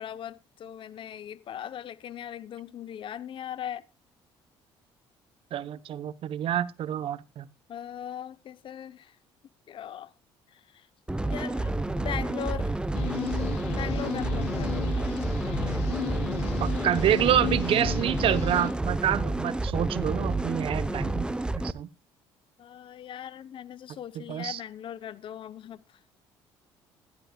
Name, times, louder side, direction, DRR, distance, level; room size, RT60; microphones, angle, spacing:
voice 1, 0.0-3.8 7.7-9.1 9.7-10.1 10.5-10.9 11.2-12.8 13.7-14.9 19.8-20.0 22.6-25.8, left 10 dB, 55° left, 0.7 m, -39 dB
voice 2, 5.5-7.4 16.6-21.3 21.6-21.9 24.2-24.6, right 11 dB, 60° right, 0.8 m, -27 dB
sound 1, 11.1-21.7, right 2 dB, 10° right, 0.7 m, -29 dB
sound 2, 12.9-18.7, left 14 dB, 75° left, 2.3 m, -35 dB
15.5 x 12.0 x 2.3 m
supercardioid pair, 80°, 10 cm